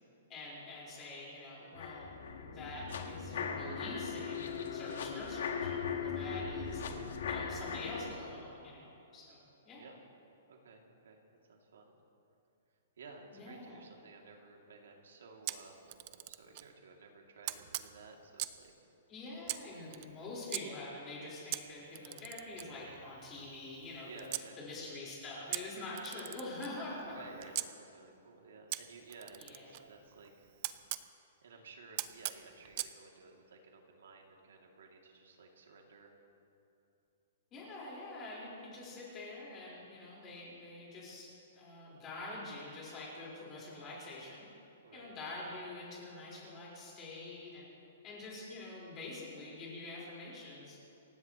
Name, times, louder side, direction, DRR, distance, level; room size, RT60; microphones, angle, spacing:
voice 1, 0.3-6.8 7.3-9.8 13.3-13.8 19.1-27.2 29.4-29.7 37.5-44.5 44.9-47.7 48.0-50.8, left 2 dB, 15° left, -6 dB, 4.6 m, -46 dB
sound 1, 1.7-8.1, left 6 dB, 60° left, 1.6 m, -39 dB
voice 2, 10.5-11.9 13.0-15.9 16.2-18.7 24.0-24.5 27.1-30.5 31.0-36.2 44.8-45.1, right 4 dB, 85° right, 0 dB, 2.6 m, -55 dB
Camera, 15.5-16.7 17.4-18.7 19.4-20.6 21.5-24.5 25.5-27.7 28.7-31.1 32.0-32.9, right 15 dB, 30° right, 0.5 m, -42 dB
28.5 x 15.5 x 3.1 m, 2.8 s
hypercardioid pair, 175°, 0 cm